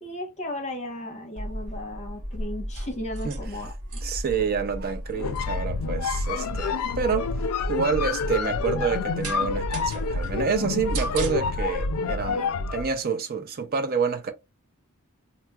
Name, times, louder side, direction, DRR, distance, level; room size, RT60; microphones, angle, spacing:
voice 1, 0.0-4.0, left 1 dB, 30° left, 1.0 m, -35 dB
sound 1, 1.4-11.9, right 1 dB, 85° right, 0.8 m, -35 dB
voice 2, 4.0-7.3 7.7-14.3, right 5 dB, 45° right, 0.5 m, -28 dB
sound 2, 5.1-12.9, left 5 dB, 75° left, 0.4 m, -28 dB
4.4 x 2.0 x 2.2 m
head